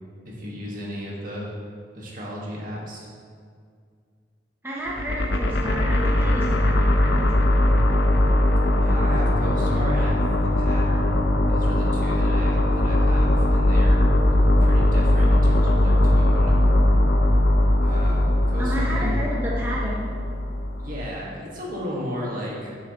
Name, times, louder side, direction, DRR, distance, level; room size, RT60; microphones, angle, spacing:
voice 1, 0.3-1.5 1.9-3.1 8.8-11.2 11.5-16.6 17.8-19.2 20.8-22.8, equal, 50° right, -4 dB, 1.9 m, -34 dB
voice 2, 4.6-7.6 18.6-20.1, equal, 15° right, -6 dB, 0.9 m, -31 dB
sound 1, 4.9-21.1, left 1 dB, 85° left, 0.7 m, -20 dB
9.6 x 7.6 x 3.1 m, 2.1 s
head